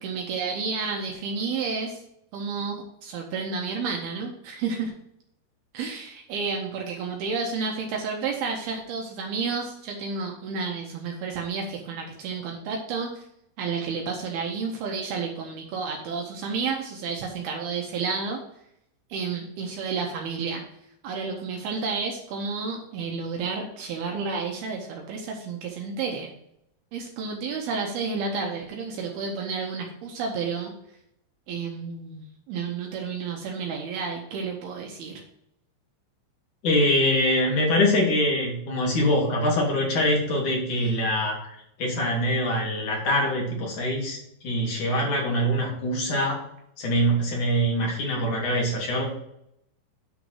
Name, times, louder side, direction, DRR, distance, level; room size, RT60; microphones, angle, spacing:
voice 1, 0.0-2.0 2.3-4.9 5.7-13.2 13.6-18.4 19.1-20.6 21.0-26.3 26.9-30.7 31.5-35.2, right 5 dB, 80° right, 0 dB, 2.3 m, -31 dB
voice 2, 36.6-44.2 44.4-46.4 46.8-49.0, equal, 45° left, -2 dB, 3.1 m, -24 dB
10.0 x 4.0 x 6.2 m, 0.76 s
omnidirectional pair, 5.7 m